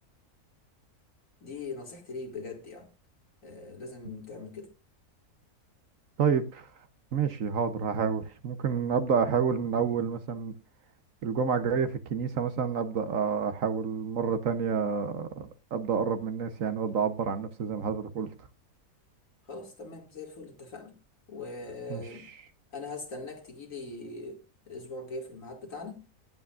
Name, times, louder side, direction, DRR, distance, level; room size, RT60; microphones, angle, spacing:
voice 1, 1.4-2.9 3.4-4.7 19.5-20.9 21.3-22.3 22.7-24.4 24.7-26.0, left 3 dB, 60° left, 2.5 m, -41 dB
voice 2, 6.2-6.7 7.1-10.5 11.2-18.3 21.9-22.0, right 6 dB, 60° right, 1.2 m, -29 dB
18.0 x 8.4 x 2.5 m
omnidirectional pair, 1.6 m